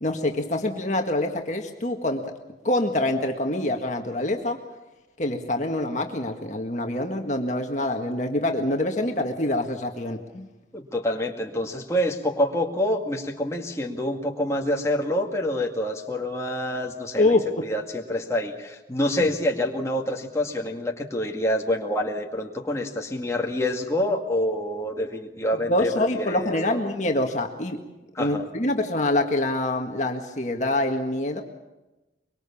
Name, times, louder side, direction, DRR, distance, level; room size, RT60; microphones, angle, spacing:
voice 1, 0.0-2.4 2.6-4.6 5.2-10.5 17.2-17.7 25.7-27.8 28.2-31.4, left 1 dB, 40° left, 3 dB, 1.8 m, -25 dB
voice 2, 10.7-17.4 17.6-26.8 28.1-28.5, left 1 dB, 15° left, 0 dB, 2.1 m, -27 dB
24.0 x 23.5 x 7.2 m, 1.1 s
head